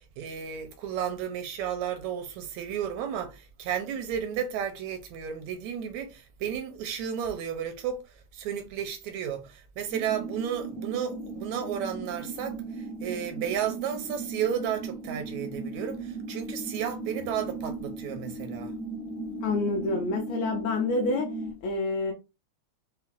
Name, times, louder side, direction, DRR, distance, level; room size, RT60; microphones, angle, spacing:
voice 1, 0.0-8.0 8.3-18.7, right 8 dB, 80° right, 1.8 m, -33 dB
sound 1, 9.9-21.5, right 3 dB, 15° left, 0.5 m, -37 dB
voice 2, 19.4-21.3 21.6-22.1, left 3 dB, 75° left, 1.6 m, -28 dB
5.7 x 2.1 x 2.4 m
omnidirectional pair, 3.4 m